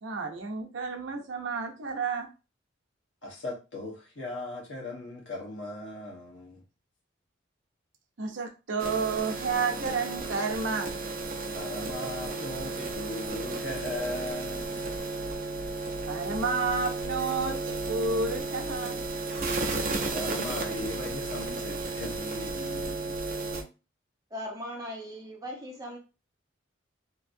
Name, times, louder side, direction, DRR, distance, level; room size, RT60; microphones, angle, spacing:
voice 1, 0.0-2.3 8.2-11.0 16.0-19.0, right 4 dB, 80° right, 0.7 m, -31 dB
voice 2, 3.2-6.6 11.5-14.9 20.1-23.2, left 2 dB, 70° left, 1.2 m, -38 dB
sound 1, 8.8-23.6, right 3 dB, 45° right, 0.6 m, -33 dB
voice 3, 24.3-26.0, equal, 20° right, 0.9 m, -38 dB
3.0 x 2.7 x 2.6 m
head